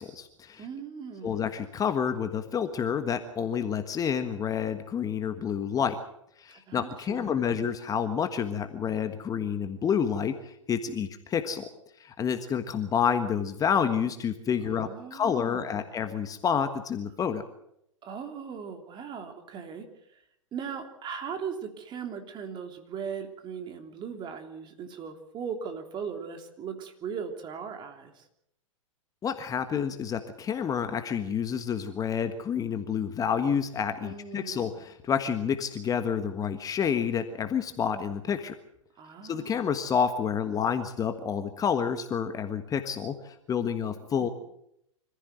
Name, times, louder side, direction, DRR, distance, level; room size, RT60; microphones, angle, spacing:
voice 1, 0.0-0.6 1.2-6.0 6.4-11.7 12.0-17.4 29.2-38.5 39.2-44.3, left 7 dB, 20° left, 8 dB, 1.5 m, -29 dB
voice 2, 0.6-1.6 6.5-7.7 14.6-16.0 18.0-19.9 20.5-28.3 34.0-34.7 39.0-39.7 43.9-44.3, right 6 dB, 25° right, 6 dB, 3.1 m, -39 dB
25.5 x 15.0 x 8.0 m, 0.77 s
hypercardioid pair, 110°, 17 cm